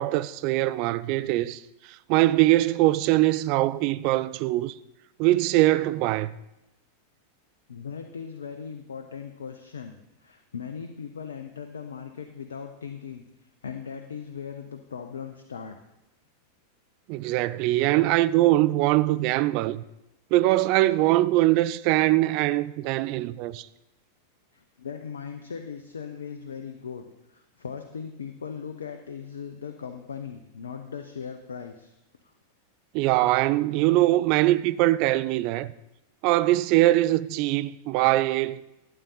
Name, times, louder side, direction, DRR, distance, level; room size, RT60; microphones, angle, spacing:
voice 1, 0.0-1.6 2.1-4.7 5.2-6.4 17.1-19.8 20.3-23.7 32.9-35.7 36.2-38.6, right 17 dB, 45° right, 0.4 m, -22 dB
voice 2, 7.7-13.2 13.6-15.8 24.5-31.9, left 6 dB, 70° left, 0.6 m, -38 dB
12.0 x 7.8 x 4.0 m
figure-of-eight pair, 90°, 0 cm